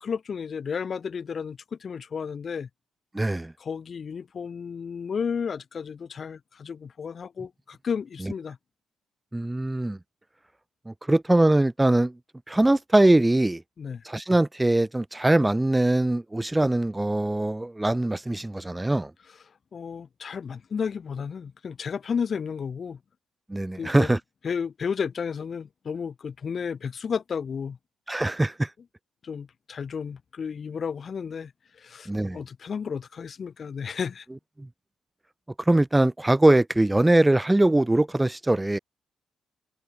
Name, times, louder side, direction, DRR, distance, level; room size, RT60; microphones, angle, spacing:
voice 1, 0.0-2.7 3.6-8.6 13.8-14.0 19.7-23.0 23.8-24.1 24.4-27.8 29.2-34.2, left 6 dB, 55° left, 1.4 m, -32 dB
voice 2, 3.1-3.5 8.2-8.3 9.3-10.0 10.9-12.1 12.5-13.6 14.0-19.1 23.5-24.2 28.1-28.7 32.1-32.4 34.6-34.7 35.7-38.8, right 1 dB, 15° right, 0.7 m, -22 dB
hypercardioid pair, 50°, 0 cm